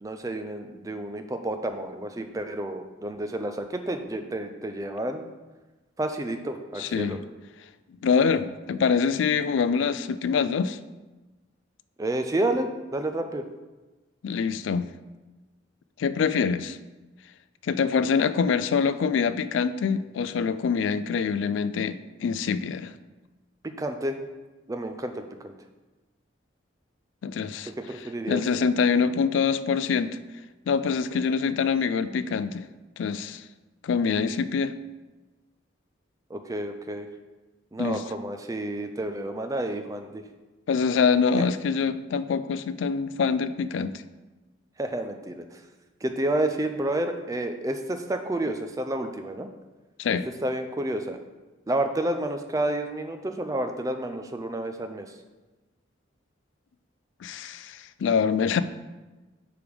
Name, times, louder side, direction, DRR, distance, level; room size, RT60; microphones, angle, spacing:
voice 1, 0.0-5.3 6.0-7.2 12.0-13.4 23.6-24.2 24.7-25.5 27.9-28.4 36.3-37.1 37.7-40.2 44.8-45.6 46.0-49.5 50.4-51.2 51.7-55.1, right 1 dB, 20° right, 7 dB, 0.4 m, -30 dB
voice 2, 6.8-7.2 8.0-10.8 14.2-14.9 16.0-16.8 17.6-22.9 27.2-27.7 28.3-30.2 30.7-32.7 33.0-33.4 33.8-34.7 37.8-38.0 40.7-44.0 50.0-50.3 57.2-58.6, left 6 dB, 80° left, 13 dB, 0.3 m, -25 dB
5.1 x 4.8 x 5.1 m, 1.2 s
head